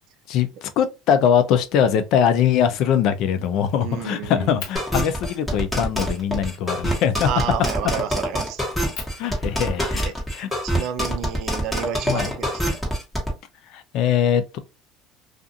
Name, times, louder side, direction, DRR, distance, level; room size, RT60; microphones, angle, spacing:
voice 1, 0.3-7.3 9.2-10.5 12.1-12.3 13.7-14.6, left 8 dB, 60° left, 0.4 m, -22 dB
Fire, 2.4-2.7 3.1-4.0 4.6-4.8 5.4-5.5 6.0-6.2 7.6-7.9 8.4-8.5 8.9-10.7 11.8-12.7, left 6 dB, 80° left, 0.8 m, -41 dB
voice 2, 3.8-4.6 7.2-8.6 10.0-10.1 10.6-12.8, right 9 dB, 65° right, 0.4 m, -30 dB
sound 1, 4.8-13.3, equal, 5° left, 1.2 m, -25 dB
2.4 x 2.4 x 2.6 m
cardioid pair, 120°, 0 cm